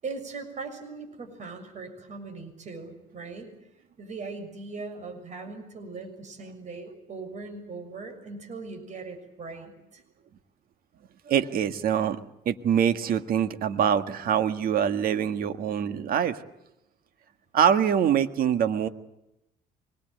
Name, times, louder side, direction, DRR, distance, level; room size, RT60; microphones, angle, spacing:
voice 1, 0.0-3.5 4.0-10.0, right 4 dB, 45° right, 6 dB, 6.6 m, -39 dB
voice 2, 11.3-12.2 12.5-16.4 17.5-18.9, right 8 dB, 60° right, 9 dB, 1.7 m, -24 dB
25.0 x 21.0 x 9.2 m, 0.86 s
cardioid pair, 110°, 17 cm